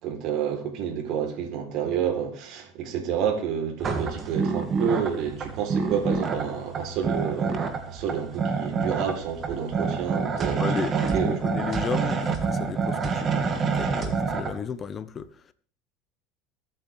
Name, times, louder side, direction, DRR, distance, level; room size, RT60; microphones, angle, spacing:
voice 1, 0.0-11.4, right 7 dB, 60° right, 3.9 m, -29 dB
sound 1, 3.8-14.5, right 5 dB, 40° right, 2.5 m, -27 dB
voice 2, 10.5-15.5, left 6 dB, 35° left, 1.3 m, -33 dB
23.0 x 9.0 x 3.5 m
hypercardioid pair, 80°, 0 cm